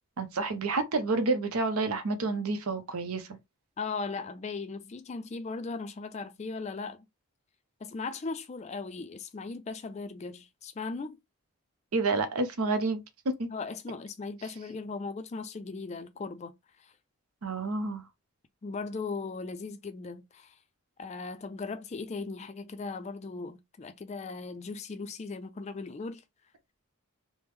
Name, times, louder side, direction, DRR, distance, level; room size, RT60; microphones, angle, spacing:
voice 1, 0.2-3.4 11.9-13.0 13.4-13.5 17.4-18.0, right 3 dB, 75° right, 0.7 m, -29 dB
voice 2, 3.8-7.1 7.8-11.2 13.5-16.5 16.8-16.9 18.6-20.5 21.0-26.2, left 4 dB, 30° left, 0.3 m, -38 dB
3.5 x 2.0 x 3.1 m
head